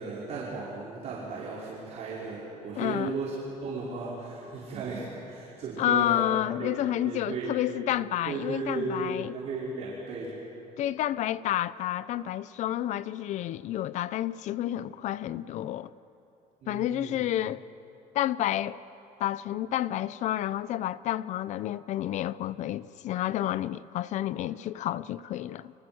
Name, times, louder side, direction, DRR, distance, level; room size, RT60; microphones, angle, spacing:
voice 1, 0.0-6.3 6.6-7.6 8.3-10.4 16.6-17.2, right 3 dB, 50° right, 5.3 m, -35 dB
voice 2, 2.8-3.2 5.8-9.3 10.8-15.9 16.7-17.6 18.1-18.8 19.2-25.7, left 12 dB, 55° left, 0.6 m, -30 dB
29.5 x 25.5 x 7.9 m
cardioid pair, 170°, 15 cm